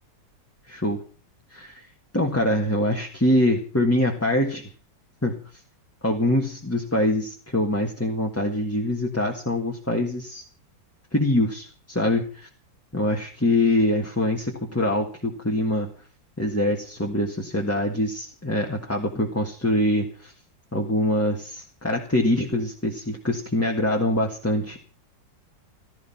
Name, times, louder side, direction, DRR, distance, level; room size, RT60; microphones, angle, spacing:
voice 1, 0.7-1.0 1.5-1.9 2.1-4.6 5.2-5.4 6.0-10.4 11.1-12.3 12.9-15.9 16.4-20.3 20.7-24.8, left 1 dB, 10° left, 0 dB, 1.5 m, -24 dB
16.0 x 13.0 x 5.8 m, 0.38 s
omnidirectional pair, 2.0 m